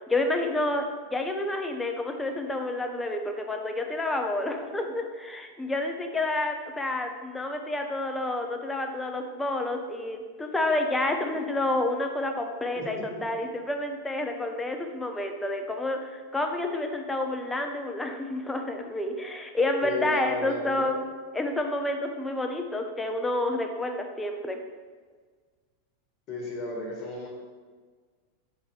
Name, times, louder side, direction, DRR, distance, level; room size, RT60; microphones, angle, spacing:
voice 1, 0.1-21.1 21.3-24.6, left 2 dB, 10° left, 4 dB, 0.8 m, -29 dB
voice 2, 12.8-13.5 19.8-20.9 26.3-27.3, left 2 dB, 45° left, -1 dB, 1.7 m, -34 dB
6.8 x 4.3 x 3.2 m, 1.5 s
hypercardioid pair, 95°, 0 cm